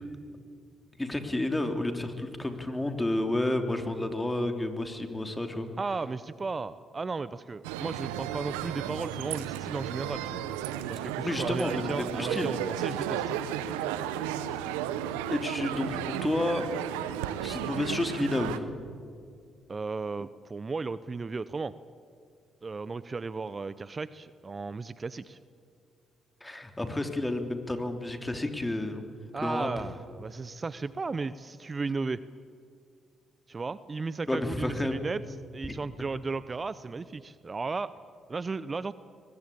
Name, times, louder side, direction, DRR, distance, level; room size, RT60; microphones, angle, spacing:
voice 1, 1.0-5.7 11.2-12.5 15.3-16.9 17.4-18.6 26.4-29.0 29.4-29.9 34.3-35.0 35.7-35.8, left 1 dB, 15° left, 6 dB, 3.3 m, -31 dB
voice 2, 5.8-10.4 10.9-13.2 19.7-21.7 22.6-25.4 29.3-32.2 33.5-35.2 35.5-37.9 38.3-38.9, right 4 dB, 35° right, 16 dB, 0.7 m, -35 dB
sound 1, 7.6-18.6, right 10 dB, 85° right, 0.9 m, -34 dB
22.5 x 20.5 x 8.6 m, 2.2 s
hypercardioid pair, 45°, 0 cm